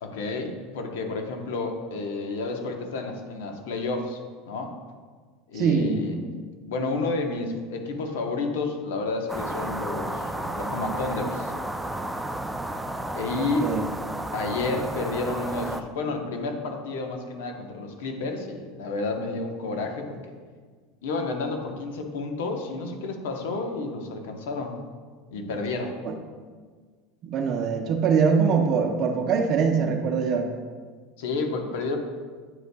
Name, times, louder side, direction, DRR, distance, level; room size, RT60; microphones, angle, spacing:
voice 1, 0.0-4.2 4.5-4.7 5.5-6.2 6.6-11.5 13.1-13.7 14.3-20.3 21.0-24.8 25.3-25.9 31.2-32.0, left 3 dB, 90° left, 4 dB, 0.9 m, -30 dB
voice 2, 5.5-6.1 13.4-13.8 26.0-26.1 27.2-30.5, right 6 dB, 40° right, 2 dB, 0.7 m, -23 dB
sound 1, 9.3-15.8, right 1 dB, 5° right, 0.3 m, -32 dB
9.3 x 5.4 x 2.3 m, 1.6 s
supercardioid pair, 145°, 0 cm